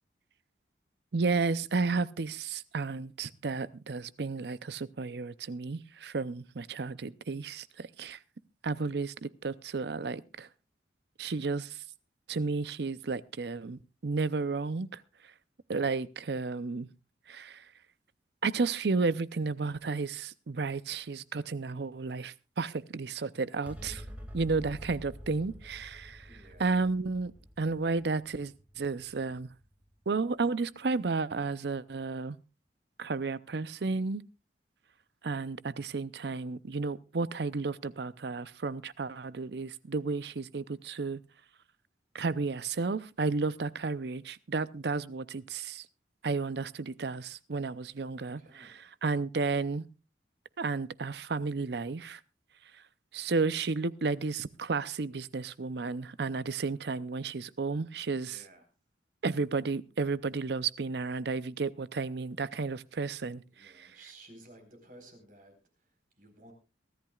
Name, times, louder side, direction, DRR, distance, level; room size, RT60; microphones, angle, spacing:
voice 1, 1.1-8.2 8.6-10.5 11.2-11.8 12.3-15.0 15.7-16.9 17.3-17.6 18.4-24.0 24.3-26.3 26.6-27.3 27.6-29.5 30.1-32.4 33.0-34.2 35.2-41.2 42.1-45.9 46.2-49.9 50.6-52.2 53.1-58.4 59.2-63.9, right 4 dB, 65° right, 0.6 m, -32 dB
sound 1, 23.6-30.3, equal, 10° right, 2.1 m, -48 dB
voice 2, 26.3-26.7 48.1-48.9 58.2-58.7 63.5-66.5, right 1 dB, 45° right, 4.4 m, -55 dB
23.0 x 13.5 x 2.4 m
head